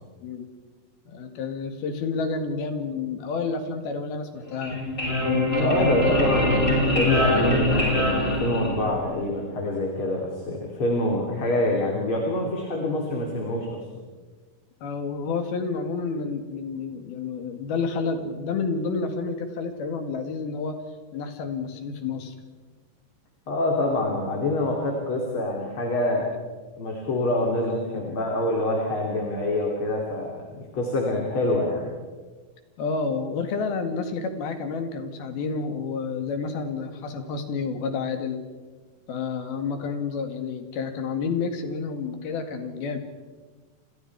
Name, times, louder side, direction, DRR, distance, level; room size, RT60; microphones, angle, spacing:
voice 1, 1.1-4.8 5.2-5.9 14.8-20.8 21.1-22.3 27.7-28.0 32.8-38.4 39.1-43.0, left 4 dB, 80° left, 6 dB, 4.0 m, -30 dB
sound 1, 4.4-9.1, left 1 dB, 20° left, 7.4 m, -23 dB
voice 2, 5.6-13.8 23.5-26.3 26.8-31.9, left 1 dB, 35° left, -1 dB, 3.4 m, -26 dB
30.0 x 28.0 x 4.8 m, 1.4 s
omnidirectional pair, 4.3 m